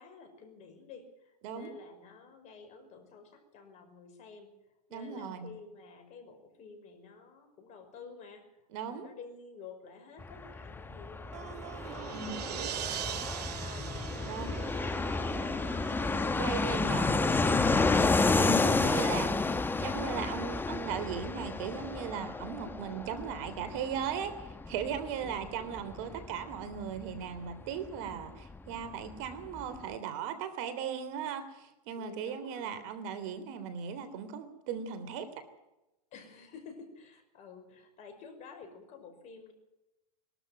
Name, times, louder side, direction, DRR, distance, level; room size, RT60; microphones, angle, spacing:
voice 1, 0.0-4.6 4.9-16.8 25.2-26.0 32.0-32.9 36.1-39.5, left 5 dB, 35° left, 6 dB, 5.6 m, -52 dB
voice 2, 4.9-5.5 8.7-9.1 12.1-12.4 14.2-14.6 16.3-35.3, right 7 dB, 55° right, 10 dB, 3.3 m, -38 dB
Fixed-wing aircraft airplane, 10.2-28.6 28.8-28.9 29.1-29.8, left 3 dB, 10° left, 1.2 m, -31 dB
sound 1, 11.1-15.7, right 12 dB, 85° right, 0.7 m, -41 dB
sound 2, 11.3-17.3, right 12 dB, 35° right, 1.1 m, -47 dB
22.5 x 13.0 x 9.1 m, 0.95 s
hypercardioid pair, 120°, 20 cm